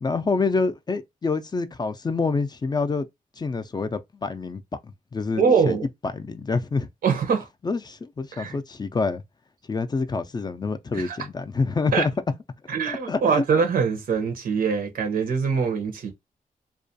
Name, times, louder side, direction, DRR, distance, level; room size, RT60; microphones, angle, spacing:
voice 1, 0.0-3.1 3.4-5.8 6.1-6.9 7.6-9.2 9.7-12.1 13.1-13.4, left 4 dB, 30° left, 0.3 m, -27 dB
voice 2, 5.4-5.9 7.0-7.5 8.3-8.6 10.9-11.2 11.9-12.1 12.7-16.1, right 6 dB, 80° right, 0.7 m, -23 dB
2.3 x 2.2 x 2.6 m
cardioid pair, 65°, 15 cm